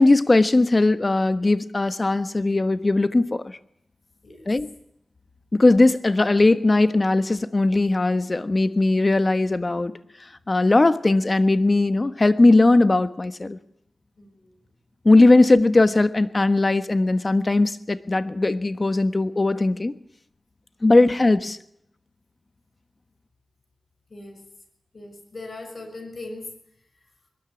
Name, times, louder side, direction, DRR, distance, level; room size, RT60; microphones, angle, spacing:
voice 1, 0.0-3.5 4.5-4.7 5.5-9.9 10.5-13.6 15.0-19.9 20.8-21.6, left 2 dB, 40° left, 11 dB, 1.2 m, -19 dB
voice 2, 14.2-14.5 20.9-21.0 24.1-24.4 24.9-26.5, left 2 dB, 60° left, 5 dB, 6.3 m, -39 dB
21.5 x 13.5 x 9.7 m, 0.74 s
cardioid pair, 50°, 0 cm